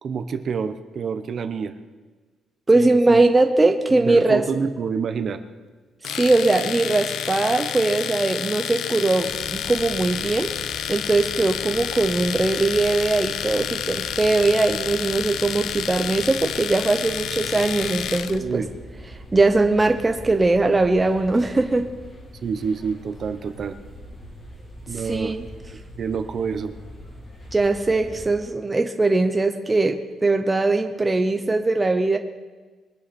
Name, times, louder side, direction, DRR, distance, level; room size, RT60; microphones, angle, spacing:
voice 1, 0.0-1.7 2.7-3.2 4.0-5.4 18.4-18.7 22.4-23.8 24.9-25.3 26.0-26.7, right 6 dB, 40° right, 10 dB, 0.9 m, -27 dB
voice 2, 2.7-4.4 6.1-10.5 10.9-18.6 19.3-21.9 25.1-25.4 27.5-32.2, right 2 dB, 15° right, 6 dB, 0.8 m, -20 dB
Domestic sounds home sounds, 6.0-18.4, left 9 dB, 70° left, 0.6 m, -29 dB
sound 1, 9.2-28.4, equal, 25° left, 2.9 m, -42 dB
22.5 x 10.0 x 4.3 m, 1.3 s
cardioid pair, 155°, 0 cm